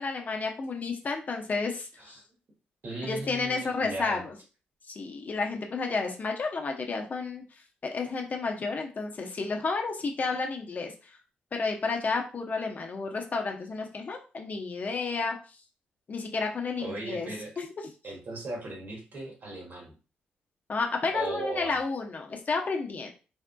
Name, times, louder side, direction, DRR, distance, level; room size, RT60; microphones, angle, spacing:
voice 1, 0.0-2.2 3.0-4.3 4.9-7.4 7.8-10.9 11.5-15.4 16.1-17.3 17.6-17.7 20.7-23.1, left 4 dB, 45° left, 2 dB, 0.7 m, -31 dB
voice 2, 2.8-4.2 16.8-17.5 18.0-19.9 21.1-21.8, right 2 dB, 60° right, -1 dB, 1.5 m, -37 dB
3.5 x 2.4 x 2.2 m, 0.34 s
supercardioid pair, 60°, 4 cm